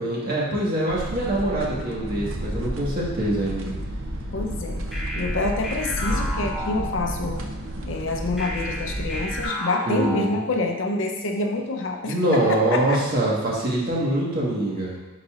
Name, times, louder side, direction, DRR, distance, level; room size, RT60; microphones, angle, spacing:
voice 1, 0.0-3.7 9.8-10.4 12.0-15.0, right 1 dB, 45° right, -5 dB, 1.5 m, -24 dB
sound 1, 0.9-9.5, right 1 dB, 65° right, 0.7 m, -31 dB
voice 2, 4.3-4.9 5.1-7.4 7.9-13.0, left 2 dB, 60° left, 3 dB, 0.6 m, -27 dB
sound 2, 4.9-7.4 8.4-10.9, left 1 dB, ahead, 1.3 m, -33 dB
9.9 x 4.1 x 2.5 m, 1.0 s
head